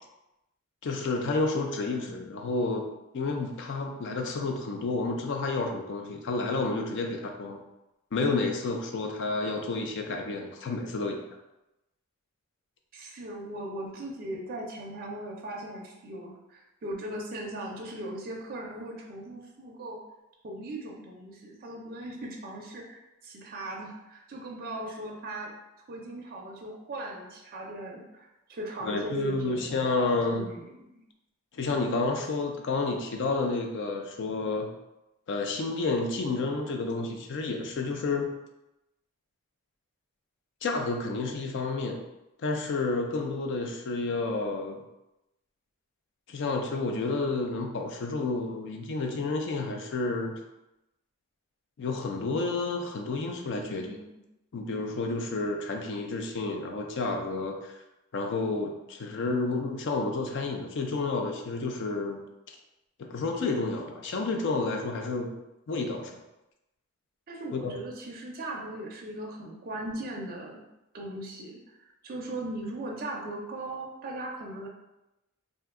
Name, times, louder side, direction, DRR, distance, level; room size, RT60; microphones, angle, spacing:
voice 1, 0.8-2.9 3.1-7.6 8.1-11.2 28.8-30.5 31.5-34.7 35.3-38.3 40.6-42.0 42.4-44.8 46.3-50.4 51.8-54.0 54.5-57.7 58.1-62.2 62.5-62.6 63.0-65.4 65.7-66.1 67.5-67.8, left 3 dB, 55° left, 3 dB, 0.4 m, -30 dB
voice 2, 1.9-2.3 12.9-20.0 20.4-25.5 25.9-31.0 53.5-54.1 67.3-70.6 70.9-71.6 72.0-74.7, right 1 dB, 40° right, -1 dB, 0.4 m, -39 dB
2.6 x 2.2 x 3.5 m, 0.94 s
head